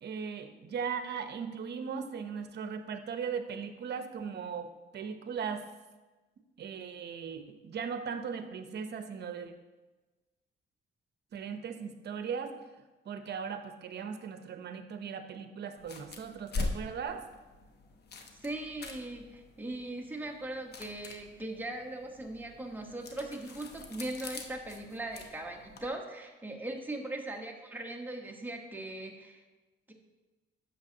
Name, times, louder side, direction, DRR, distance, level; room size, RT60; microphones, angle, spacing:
voice 1, 0.0-5.6 6.6-9.5 11.3-12.6 13.1-17.3, right 6 dB, 55° right, 8 dB, 0.8 m, -38 dB
sound 1, 15.8-25.9, left 3 dB, 55° left, 1.0 m, -43 dB
voice 2, 18.4-29.4 29.9-30.0, right 2 dB, 10° right, 1 dB, 1.2 m, -39 dB
10.5 x 7.0 x 2.8 m, 1.2 s
cardioid pair, 90°, 20 cm